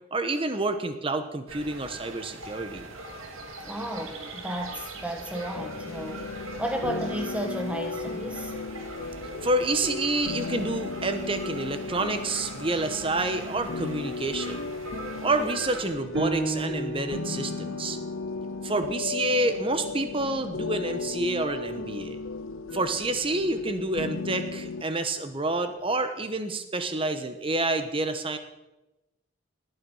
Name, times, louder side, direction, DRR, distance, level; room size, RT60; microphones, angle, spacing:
voice 1, 0.1-2.9 9.4-14.7 15.2-18.0 18.6-22.2 22.7-28.4, right 2 dB, 25° right, 9 dB, 1.1 m, -28 dB
sound 1, 1.5-15.9, right 2 dB, 80° right, 2.3 m, -41 dB
voice 2, 3.6-6.2 6.6-8.5, right 1 dB, 5° right, 4 dB, 1.7 m, -33 dB
sound 2, 5.5-24.8, left 4 dB, 75° left, 0.6 m, -36 dB
Piano, 16.1-21.3 21.8-21.9 22.5-23.0, right 2 dB, 65° right, 4.4 m, -36 dB
18.0 x 9.2 x 5.6 m, 1.0 s
head